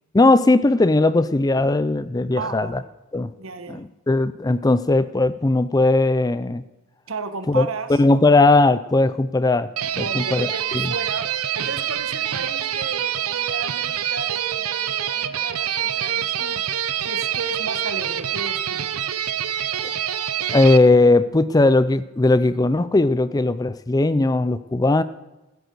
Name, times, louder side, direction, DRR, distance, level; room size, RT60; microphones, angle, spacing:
voice 1, 0.1-2.8 3.1-3.3 3.7-6.6 7.5-9.7 10.0-10.9 19.8-19.9 20.5-25.0, left 2 dB, 15° left, 14 dB, 0.4 m, -18 dB
voice 2, 2.4-2.9 3.4-3.8 7.1-8.0 10.0-16.6 17.1-18.9, right 4 dB, 65° right, 10 dB, 1.2 m, -34 dB
sound 1, 9.8-20.8, right 10 dB, 85° right, 0.7 m, -26 dB
15.0 x 9.4 x 6.8 m, 1.0 s
head